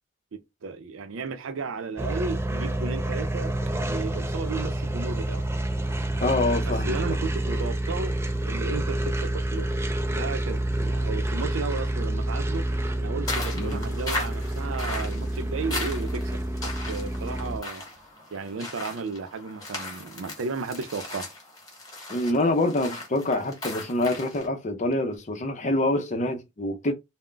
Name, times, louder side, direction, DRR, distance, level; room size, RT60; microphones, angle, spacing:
voice 1, 0.6-3.5 3.8-5.4 6.7-8.1 8.5-9.7 10.1-12.7 13.0-17.8 18.3-21.3, right 4 dB, 90° right, 0.5 m, -34 dB
sound 1, 2.0-17.6, right 1 dB, 15° right, 0.4 m, -28 dB
voice 2, 6.2-7.0 13.5-13.8 22.1-26.9, left 2 dB, 40° left, 0.5 m, -26 dB
sound 2, 13.3-24.5, left 2 dB, 20° left, 1.1 m, -37 dB
2.3 x 2.1 x 3.7 m
head